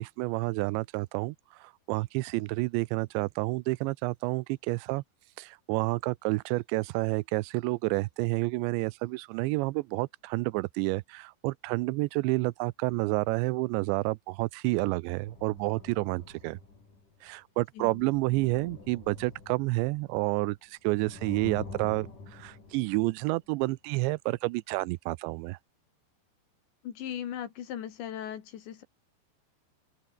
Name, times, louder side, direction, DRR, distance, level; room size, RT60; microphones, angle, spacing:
voice 1, 0.0-1.4 1.6-5.0 5.4-16.6 17.2-25.6, right 23 dB, 85° right, 2.8 m, -29 dB
sound 1, 15.2-17.3 17.8-20.5 20.9-23.3 24.1-24.2, left 3 dB, 45° left, 9.0 m, -46 dB
voice 2, 17.7-18.1 26.8-28.8, left 10 dB, 75° left, 4.5 m, -38 dB
open air
omnidirectional pair, 5.3 m